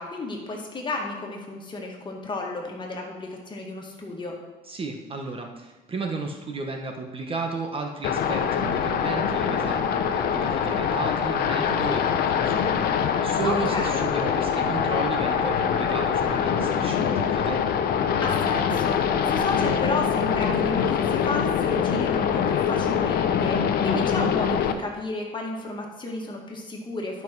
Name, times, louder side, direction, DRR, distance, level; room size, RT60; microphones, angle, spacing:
voice 1, 0.0-4.4 13.4-14.1 18.2-27.2, left 3 dB, 30° left, 0 dB, 2.0 m, -32 dB
voice 2, 4.7-17.6, right 3 dB, 35° right, 3 dB, 1.1 m, -33 dB
sound 1, 8.0-24.7, left 7 dB, 65° left, 0.8 m, -24 dB
11.5 x 5.6 x 4.6 m, 1.2 s
cardioid pair, 110°, 17 cm